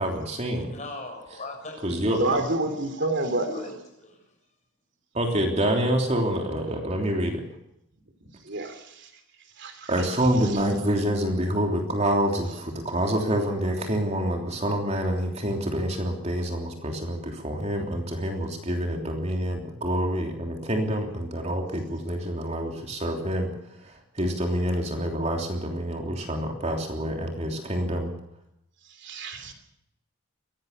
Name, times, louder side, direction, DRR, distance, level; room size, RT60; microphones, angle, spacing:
voice 1, 0.0-0.7 1.8-2.4 5.1-7.4 9.9-23.5 24.1-28.1, equal, 30° right, 2 dB, 3.3 m, -27 dB
voice 2, 0.6-1.9 2.3-3.1 3.4-4.2, left 2 dB, 35° left, 4 dB, 6.9 m, -39 dB
voice 3, 2.2-3.5 8.5-8.8 9.6-9.9 10.3-10.5 29.0-29.5, right 2 dB, 55° right, 8 dB, 3.1 m, -28 dB
23.0 x 18.0 x 6.8 m, 0.78 s
head